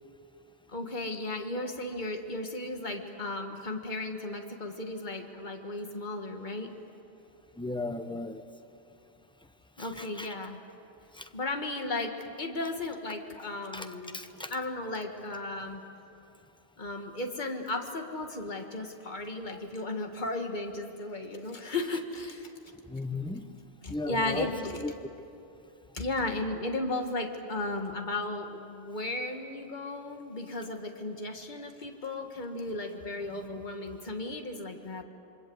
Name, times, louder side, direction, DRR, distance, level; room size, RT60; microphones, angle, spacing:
voice 1, 0.7-6.7 9.8-10.6 11.3-14.2 14.5-15.8 16.8-22.5 23.8-24.8 25.9-35.0, left 2 dB, 40° left, 4 dB, 1.9 m, -35 dB
voice 2, 7.6-8.4 9.8-10.3 11.1-11.3 13.7-14.5 19.5-19.6 22.9-23.5 23.9-24.9 33.3-33.6, left 2 dB, 5° left, 8 dB, 0.7 m, -37 dB
27.5 x 24.0 x 8.0 m, 2.8 s
omnidirectional pair, 1.2 m